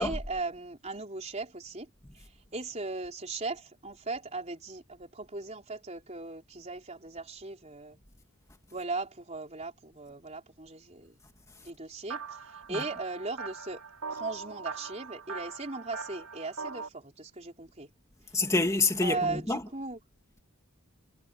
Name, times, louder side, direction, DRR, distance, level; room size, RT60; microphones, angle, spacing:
voice 1, 0.0-8.0 8.7-11.1 11.6-13.8 14.1-17.9 19.0-20.0, right 3 dB, 30° right, 4.1 m, -38 dB
sound 1, 12.1-16.9, right 5 dB, 85° right, 6.1 m, -41 dB
voice 2, 18.3-19.6, left 2 dB, 15° left, 2.4 m, -27 dB
head